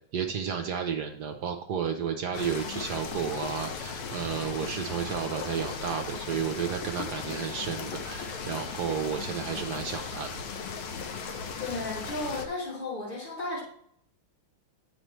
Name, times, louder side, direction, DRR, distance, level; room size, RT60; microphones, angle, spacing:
voice 1, 0.1-10.3, right 7 dB, 65° right, 4 dB, 1.1 m, -32 dB
sound 1, 2.3-12.5, left 5 dB, 80° left, 1.7 m, -37 dB
voice 2, 11.6-13.6, left 2 dB, 60° left, -8 dB, 4.0 m, -34 dB
8.9 x 6.0 x 3.1 m, 0.65 s
omnidirectional pair, 2.4 m